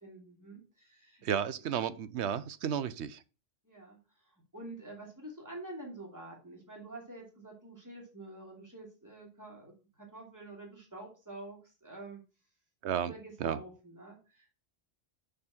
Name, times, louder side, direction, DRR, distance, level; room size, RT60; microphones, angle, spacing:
voice 1, 0.0-1.3 3.6-4.0 4.5-12.2 13.0-14.6, right 2 dB, 15° right, 2.9 m, -47 dB
voice 2, 1.2-3.2 12.8-13.1 13.4-13.6, right 8 dB, 85° right, 1.0 m, -33 dB
6.6 x 5.6 x 5.9 m
omnidirectional pair, 1.1 m